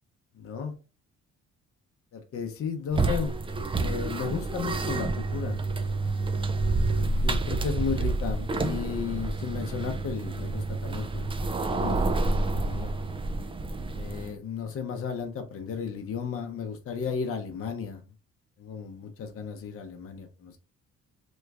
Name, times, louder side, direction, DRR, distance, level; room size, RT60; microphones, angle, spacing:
voice 1, 0.4-0.7 2.1-3.3 3.8-5.6 7.0-11.3 11.7-12.9 13.9-18.0 18.6-20.6, left 6 dB, 50° left, 0.7 m, -34 dB
sound 1, 2.9-14.3, right 3 dB, 20° right, 0.4 m, -29 dB
3.1 x 2.2 x 3.3 m
cardioid pair, 90°, 30 cm